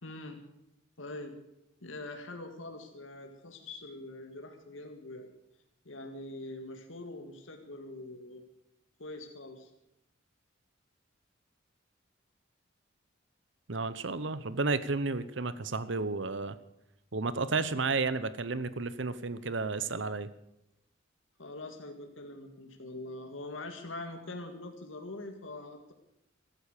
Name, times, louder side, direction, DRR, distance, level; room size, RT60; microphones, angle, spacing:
voice 1, 0.0-0.4 1.0-1.4 1.8-5.3 5.9-8.4 9.0-9.7 21.4-25.9, left 2 dB, 80° left, 4 dB, 2.0 m, -43 dB
voice 2, 13.7-16.6 17.1-20.3, right 3 dB, 65° right, 15 dB, 0.9 m, -32 dB
16.0 x 13.5 x 6.7 m, 0.83 s
head